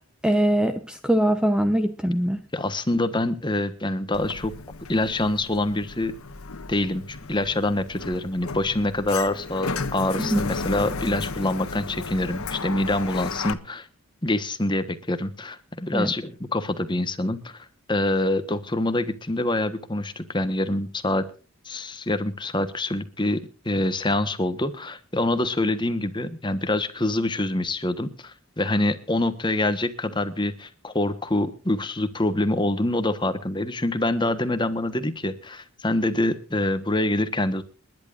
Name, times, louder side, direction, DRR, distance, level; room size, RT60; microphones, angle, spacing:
voice 1, 0.2-2.4 10.2-10.4 15.9-16.1, right 1 dB, 5° right, 0.8 m, -22 dB
voice 2, 2.5-4.5 4.9-6.1 6.7-13.9 14.2-21.3 21.6-37.6, left 1 dB, 20° left, 1.2 m, -25 dB
Sliding door, 4.1-13.5, left 4 dB, 85° left, 1.3 m, -34 dB
29.5 x 11.0 x 2.6 m
head